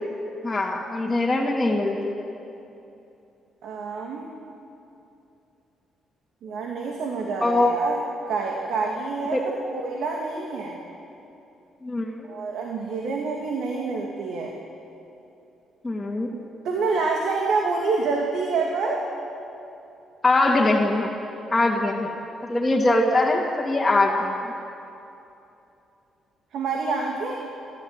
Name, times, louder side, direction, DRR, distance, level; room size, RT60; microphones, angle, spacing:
voice 1, 0.4-2.3 7.4-7.8 9.3-9.5 11.8-12.3 15.8-16.3 20.2-21.1 21.5-22.1 22.5-24.3, left 2 dB, 15° left, -5 dB, 2.6 m, -22 dB
voice 2, 3.6-4.3 6.4-8.0 8.3-10.8 12.2-14.5 16.6-19.1 26.5-27.3, right 4 dB, 75° right, -1 dB, 2.6 m, -27 dB
28.0 x 13.5 x 9.1 m, 2.9 s
cardioid pair, 90°, 0 cm